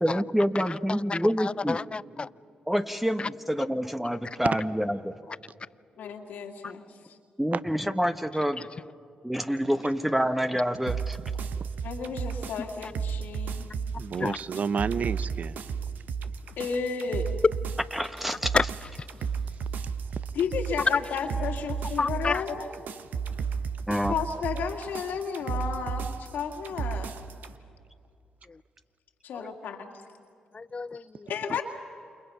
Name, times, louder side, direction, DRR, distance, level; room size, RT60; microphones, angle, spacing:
voice 1, 0.0-1.8 2.7-5.1 7.4-8.7 9.2-11.2 17.9-18.5 23.9-24.1, equal, 5° right, 1.2 m, -27 dB
voice 2, 0.9-2.3 3.2-3.3 12.8-12.9 14.2-14.4 18.5-18.6 22.0-22.4 29.3-29.5 30.5-31.3, left 4 dB, 35° left, 0.5 m, -30 dB
voice 3, 6.0-6.8 11.8-13.7 16.6-17.3 20.3-22.7 24.1-27.1 29.2-29.9 31.2-31.6, left 6 dB, 75° left, 2.3 m, -32 dB
sound 1, 10.9-27.5, right 6 dB, 70° right, 1.0 m, -33 dB
voice 4, 14.0-15.6, right 6 dB, 55° right, 0.7 m, -30 dB
29.0 x 28.0 x 5.7 m
hypercardioid pair, 45°, 3 cm